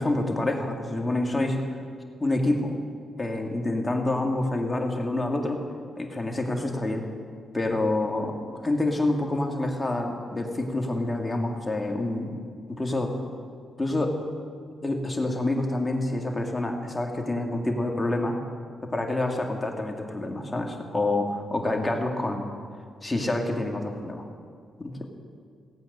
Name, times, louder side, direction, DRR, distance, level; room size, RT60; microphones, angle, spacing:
voice 1, 0.0-1.6 2.2-2.8 3.2-5.7 6.0-7.1 7.5-13.1 13.8-14.2 14.8-18.4 18.8-22.5 23.0-24.3 24.8-25.1, left 2 dB, 20° left, 2 dB, 2.1 m, -27 dB
17.0 x 8.5 x 6.7 m, 2.1 s
cardioid pair, 65°, 0 cm